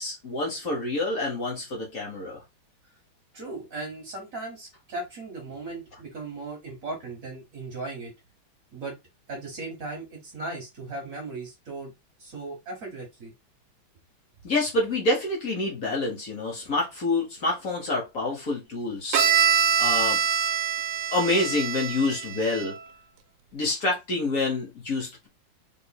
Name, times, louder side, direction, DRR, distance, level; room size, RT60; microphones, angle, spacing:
voice 1, 0.0-2.4 14.4-19.3 19.8-20.2 21.1-22.8 23.5-25.3, left 2 dB, 50° left, 1.3 m, -27 dB
voice 2, 3.3-8.1 8.7-8.9 9.3-11.9 12.2-13.3, right 2 dB, 50° right, 1.2 m, -37 dB
Bowed string instrument, 19.1-22.9, right 7 dB, 75° right, 1.2 m, -24 dB
3.7 x 3.3 x 2.2 m
omnidirectional pair, 2.2 m